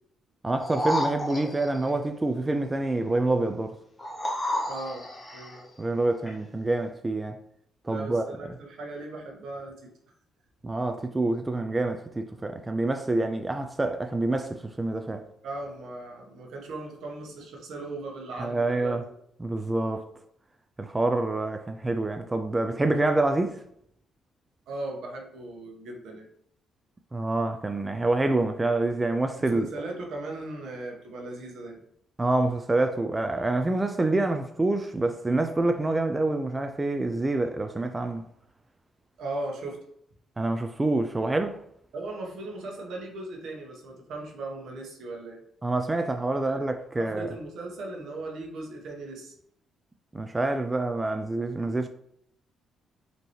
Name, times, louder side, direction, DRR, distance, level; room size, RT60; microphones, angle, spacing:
voice 1, 0.4-3.7 5.8-7.4 7.8-8.2 10.6-15.2 18.4-19.0 19.4-20.1 20.8-23.6 27.1-29.7 32.2-38.2 40.4-41.6 45.6-47.3 50.1-51.9, right 2 dB, 20° right, 0.3 m, -27 dB
sound 1, 0.6-1.9 4.0-5.6 6.3-6.4, left 1 dB, 15° left, 1.2 m, -31 dB
voice 2, 4.6-5.7 7.9-9.9 15.4-19.0 24.7-26.3 29.4-31.8 39.2-39.8 41.9-45.4 46.4-49.3, right 2 dB, 75° right, 1.1 m, -38 dB
5.3 x 2.9 x 3.1 m
cardioid pair, 90°, 0 cm